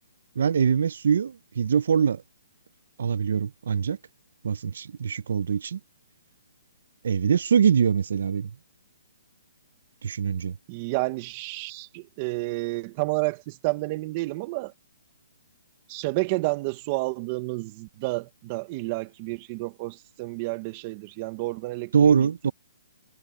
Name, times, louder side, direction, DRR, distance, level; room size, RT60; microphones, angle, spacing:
voice 1, 0.4-2.2 3.0-4.0 4.4-5.8 7.0-8.5 10.0-10.6 21.9-22.5, right 7 dB, 55° right, 0.4 m, -23 dB
voice 2, 10.7-14.7 15.9-22.5, right 23 dB, 25° right, 0.8 m, -30 dB
hypercardioid pair, 170°, 0 cm